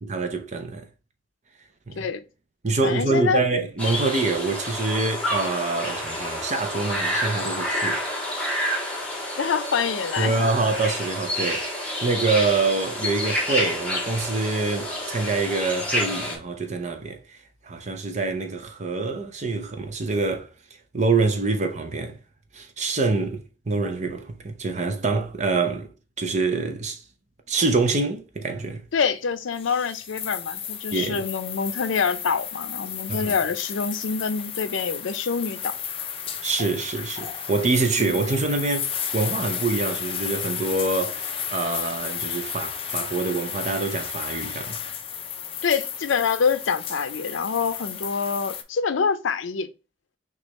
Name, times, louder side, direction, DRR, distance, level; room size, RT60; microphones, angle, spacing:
voice 1, 0.0-0.9 1.9-2.1 2.6-8.0 8.3-8.6 10.2-17.4 17.6-20.5 20.9-22.2 22.5-25.9 26.2-27.0 27.5-28.8 30.9-31.2 33.1-33.3 36.4-44.8, right 3 dB, 40° right, 0.6 m, -26 dB
voice 2, 2.8-3.4 9.4-10.4 28.9-35.7 38.0-38.1 45.6-49.7, left 6 dB, 85° left, 0.5 m, -26 dB
sound 1, 3.8-16.4, left 1 dB, 5° left, 1.3 m, -29 dB
sound 2, 29.5-48.6, left 8 dB, 30° left, 0.5 m, -33 dB
6.2 x 2.4 x 3.0 m
head